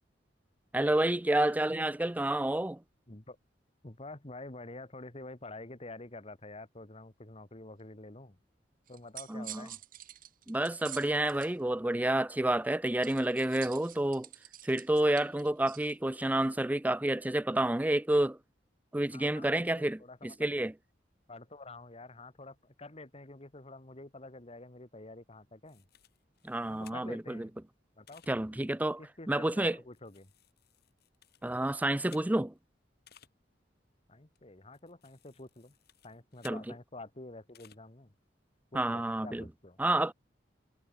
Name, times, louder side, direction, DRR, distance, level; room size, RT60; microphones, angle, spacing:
voice 1, 0.7-2.8 9.3-9.7 10.5-14.3 14.6-18.4 18.9-20.7 26.4-27.5 28.3-29.0 29.3-29.8 31.4-32.5 36.4-36.6 38.7-39.4 39.8-40.1, right 1 dB, 10° right, 0.5 m, -29 dB
voice 2, 3.8-8.4 8.9-9.8 19.1-20.5 21.3-25.8 26.7-27.5 28.0-28.2 29.0-30.3 34.1-35.8 36.0-38.1 38.7-39.8, left 2 dB, 35° left, 2.0 m, -48 dB
sound 1, 8.9-11.5 13.0-15.9, right 13 dB, 50° right, 1.4 m, -48 dB
sound 2, 25.7-27.3 28.1-28.3 29.5-32.6 33.1-33.3 34.4-36.6 37.5-37.8, left 10 dB, 60° left, 4.6 m, -60 dB
head